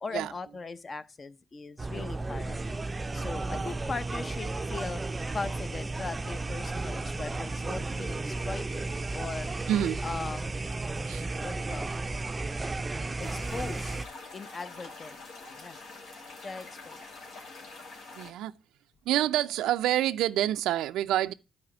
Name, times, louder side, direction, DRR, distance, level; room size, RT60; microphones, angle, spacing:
voice 1, 0.0-5.0 5.3-9.5 10.0-10.5 11.4-12.2 13.2-13.9 14.3-15.2 15.6-15.8 16.4-17.2, left 4 dB, 35° left, 0.7 m, -39 dB
sound 1, 1.8-14.0, right 3 dB, 20° right, 0.5 m, -33 dB
voice 2, 9.7-10.0 11.1-11.3 18.2-18.6 19.1-21.3, right 13 dB, 85° right, 0.4 m, -27 dB
sound 2, 13.2-18.3, left 3 dB, 80° left, 2.4 m, -46 dB
9.6 x 4.3 x 4.8 m
cardioid pair, 90°, 0 cm